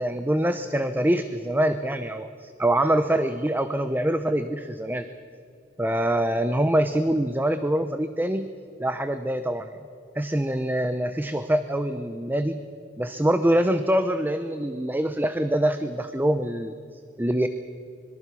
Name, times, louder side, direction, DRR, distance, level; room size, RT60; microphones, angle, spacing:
voice 1, 0.0-5.1 5.8-8.5 8.8-9.8 10.2-12.6 13.0-16.7 17.2-17.5, right 1 dB, 10° right, 10 dB, 0.7 m, -24 dB
26.0 x 22.0 x 6.2 m, 2.6 s
head